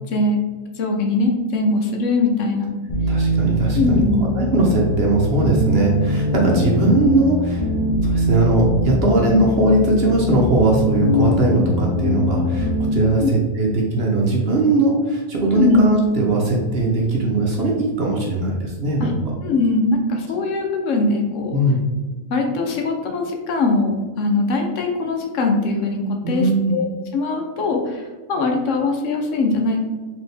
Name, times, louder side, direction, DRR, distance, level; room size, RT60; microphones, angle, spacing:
voice 1, 0.1-0.4 0.8-2.7 3.7-4.2 13.2-13.3 15.5-15.8 19.0-19.1 19.4-21.6 22.3-26.9 27.1-29.8, left 3 dB, 70° left, 2 dB, 0.9 m, -21 dB
sound 1, 2.9-12.9, left 1 dB, 40° left, 0.6 m, -22 dB
voice 2, 3.1-4.0 4.3-7.6 8.0-19.1 21.5-21.8 26.2-26.8, right 2 dB, 55° right, -2 dB, 0.8 m, -19 dB
4.1 x 2.8 x 3.3 m, 1.3 s
omnidirectional pair, 1.4 m